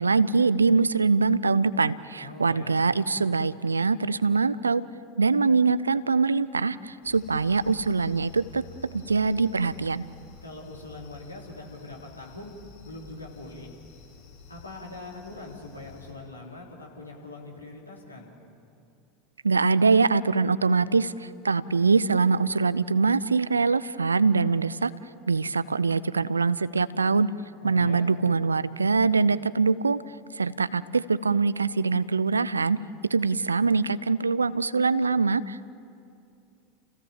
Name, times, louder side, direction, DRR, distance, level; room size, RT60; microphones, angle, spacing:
voice 1, 0.0-4.8 5.2-8.6 8.9-10.1 19.4-24.9 25.3-27.3 27.6-32.8 33.1-35.7, right 4 dB, 80° right, 18 dB, 0.5 m, -23 dB
voice 2, 2.2-3.0 10.4-12.5 12.8-13.7 14.5-18.4 27.6-28.1, left 2 dB, 85° left, -2 dB, 3.7 m, -42 dB
sound 1, 7.0-16.1, left 4 dB, 55° left, 6.7 m, -50 dB
30.0 x 16.5 x 7.4 m, 2.5 s
figure-of-eight pair, 80°, 0 cm